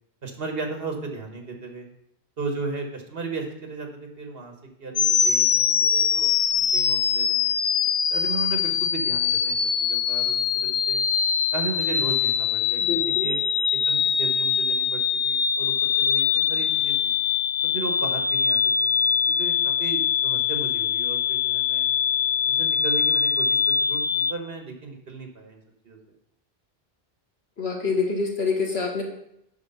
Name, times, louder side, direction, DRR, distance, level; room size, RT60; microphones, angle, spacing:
voice 1, 0.2-1.9 2.4-4.5 4.8-7.5 8.1-11.0 11.5-13.4 13.7-17.1 17.6-18.9 19.3-21.9 22.5-25.6 25.8-26.0, right 4 dB, 65° right, 3 dB, 1.6 m, -35 dB
sound 1, 4.9-24.3, left 7 dB, 55° left, 0.5 m, -23 dB
voice 2, 12.8-13.3 27.6-29.0, left 4 dB, 75° left, 0 dB, 1.9 m, -26 dB
8.3 x 5.8 x 5.5 m, 0.78 s
omnidirectional pair, 1.1 m